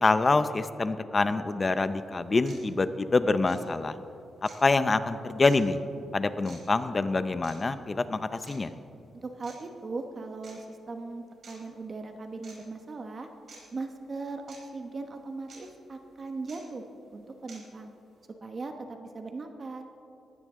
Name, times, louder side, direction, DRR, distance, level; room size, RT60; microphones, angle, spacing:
voice 1, 0.0-4.0 4.4-5.8 6.1-8.7, left 3 dB, 25° left, 12 dB, 0.6 m, -26 dB
sound 1, 1.7-1.8 2.4-2.6 3.4-3.6 4.4-4.6 5.4-5.6 6.4-6.6 7.4-7.5 8.4-8.6 9.4-9.5 10.4-10.5 11.4-11.6 12.4-12.6 13.5-13.6 14.5-14.6 15.5-15.6 16.5-16.6 17.5-17.6, right 4 dB, 55° right, 4.5 m, -49 dB
voice 2, 9.2-13.3 13.7-16.8 17.1-18.0 18.4-19.8, right 3 dB, 35° right, 5 dB, 1.0 m, -39 dB
20.5 x 16.0 x 3.7 m, 2.7 s
wide cardioid pair, 140°, 0 cm